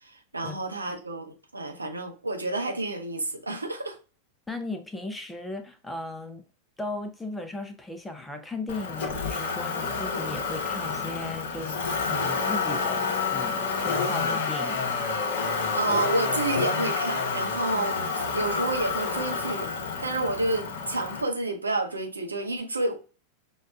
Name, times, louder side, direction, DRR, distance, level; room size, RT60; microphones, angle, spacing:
voice 1, 0.0-4.0 15.7-19.7 20.0-22.9, right 2 dB, 80° right, 0.7 m, -30 dB
voice 2, 4.5-6.4 6.8-15.1, left 2 dB, 10° left, 0.5 m, -36 dB
Motor vehicle (road), 8.7-21.2, left 4 dB, 55° left, 0.7 m, -29 dB
6.3 x 2.3 x 2.2 m
figure-of-eight pair, 90°, 0 cm